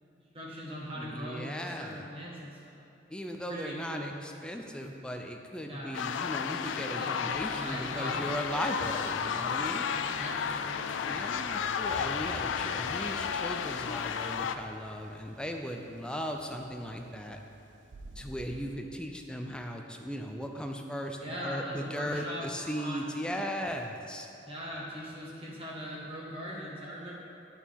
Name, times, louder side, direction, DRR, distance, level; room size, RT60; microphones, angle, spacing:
voice 1, 0.3-2.9 3.5-4.2 5.7-6.0 7.0-7.1 7.5-8.3 9.9-10.9 21.2-22.4 22.8-23.1 24.4-27.1, equal, 30° right, -5 dB, 1.4 m, -40 dB
voice 2, 1.0-2.1 3.1-9.8 11.0-17.4 18.2-24.3, equal, 5° left, 3 dB, 0.4 m, -37 dB
sound 1, 5.9-14.6, left 7 dB, 90° left, 0.3 m, -33 dB
sound 2, 7.3-18.8, right 2 dB, 85° right, 0.5 m, -51 dB
11.0 x 4.5 x 3.6 m, 2.7 s
head